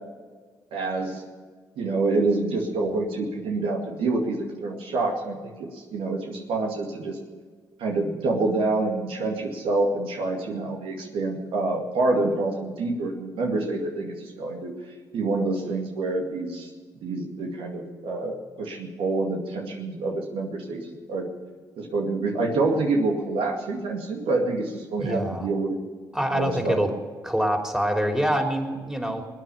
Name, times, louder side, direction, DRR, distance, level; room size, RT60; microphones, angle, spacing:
voice 1, 0.7-1.2 1.8-7.2 7.8-14.7 15.1-16.7 17.0-21.3 21.8-25.8 26.3-26.8, right 3 dB, 70° right, 1 dB, 2.2 m, -27 dB
voice 2, 25.0-25.5 26.1-26.9 27.2-29.3, equal, 5° right, 3 dB, 3.4 m, -25 dB
20.5 x 9.5 x 7.0 m, 1.5 s
hypercardioid pair, 50°, 9 cm